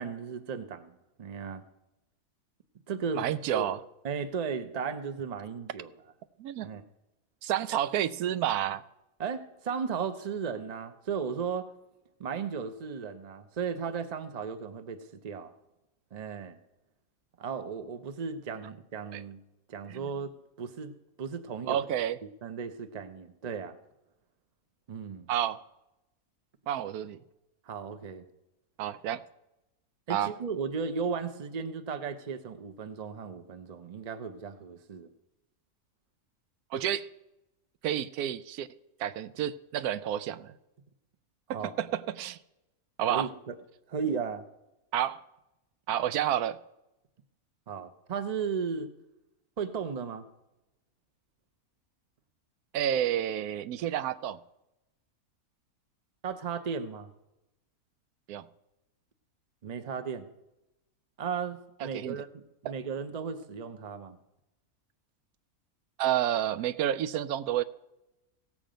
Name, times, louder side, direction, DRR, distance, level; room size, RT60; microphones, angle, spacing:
voice 1, 0.0-1.6 2.9-3.2 3.5-3.7 4.0-5.9 6.6-6.8 9.2-11.7 12.2-15.5 16.1-16.6 17.4-19.4 19.7-20.3 20.6-21.8 22.4-23.8 24.9-25.3 27.7-28.2 30.1-35.1 41.5-41.7 43.1-43.6 43.9-44.4 47.7-48.9 49.6-50.2 56.2-57.1 59.6-60.3 61.2-64.2, right 6 dB, 35° right, 9 dB, 0.7 m, -35 dB
voice 2, 3.2-3.8 6.4-6.7 7.4-8.8 19.1-19.2 19.9-20.1 21.7-22.2 25.3-25.6 26.7-27.2 28.8-29.2 30.1-30.3 36.7-37.1 37.8-38.7 39.0-40.5 41.5-42.4 43.0-43.3 44.9-45.2 45.9-46.6 52.7-54.4 58.3-58.4 61.8-62.2 62.6-62.7 66.0-67.6, right 11 dB, 90° right, 14 dB, 1.1 m, -30 dB
16.5 x 7.4 x 5.1 m, 0.94 s
omnidirectional pair, 1.6 m